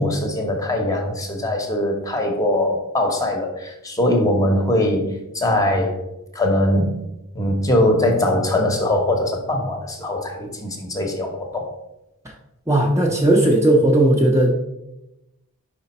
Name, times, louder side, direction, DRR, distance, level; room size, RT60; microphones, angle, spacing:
voice 1, 0.0-6.0 6.3-7.0 7.3-11.7, left 1 dB, 15° left, 2 dB, 0.8 m, -21 dB
voice 2, 12.7-14.5, right 1 dB, 15° right, -1 dB, 0.6 m, -16 dB
5.0 x 5.0 x 4.1 m, 0.91 s
head